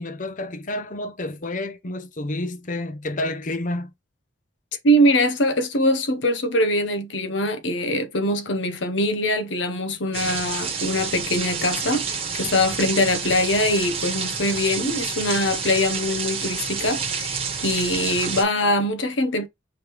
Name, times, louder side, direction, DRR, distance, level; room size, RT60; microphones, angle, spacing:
voice 1, 0.0-3.9, left 1 dB, 45° left, 0.7 m, -29 dB
voice 2, 4.8-19.5, left 1 dB, 85° left, 0.9 m, -23 dB
sound 1, 10.1-18.4, right 5 dB, 35° right, 1.2 m, -29 dB
4.9 x 3.3 x 3.1 m
head